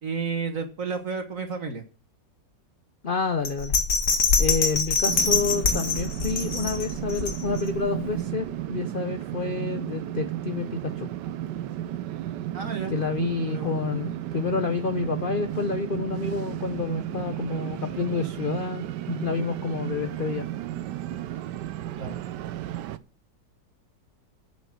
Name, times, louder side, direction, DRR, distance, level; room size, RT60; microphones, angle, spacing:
voice 1, 0.0-1.8 12.5-12.9 13.4-13.7 22.0-22.2, right 5 dB, 50° right, 1.6 m, -31 dB
voice 2, 3.0-3.7 4.4-11.1 12.9-20.5, left 4 dB, 85° left, 0.4 m, -29 dB
Bell, 3.4-7.8 8.2-8.3, left 4 dB, 45° left, 1.6 m, -24 dB
sound 1, 5.1-23.0, right 12 dB, 75° right, 1.2 m, -33 dB
7.5 x 7.2 x 7.6 m
omnidirectional pair, 2.0 m